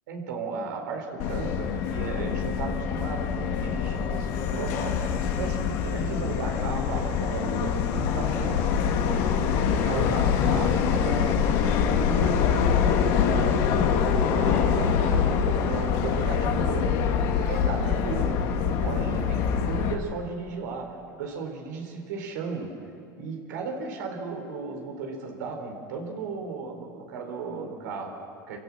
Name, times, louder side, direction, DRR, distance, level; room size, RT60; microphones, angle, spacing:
voice 1, 0.1-13.6 14.1-17.0 17.3-22.9 23.2-28.6, right 4 dB, 80° right, 2 dB, 4.5 m, -35 dB
Subway metro underground, 1.2-19.9, left 7 dB, 65° left, 2.3 m, -25 dB
27.0 x 16.0 x 7.5 m, 2.5 s
hypercardioid pair, 95°, 10 cm